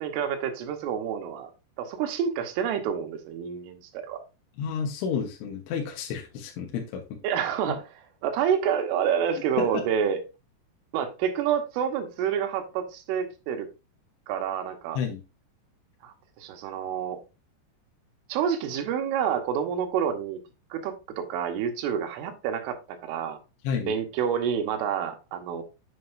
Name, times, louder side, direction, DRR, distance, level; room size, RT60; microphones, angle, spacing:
voice 1, 0.0-1.5 1.8-4.2 7.2-7.9 8.2-10.2 10.9-13.7 14.3-15.0 16.0-17.2 18.3-20.4 20.7-23.4 23.9-25.6, right 8 dB, 85° right, 3.7 m, -28 dB
voice 2, 4.6-7.2 7.7-7.8 9.6-9.8 15.0-15.2 23.6-23.9, left 6 dB, 80° left, 3.5 m, -31 dB
7.7 x 7.7 x 2.6 m
omnidirectional pair, 5.6 m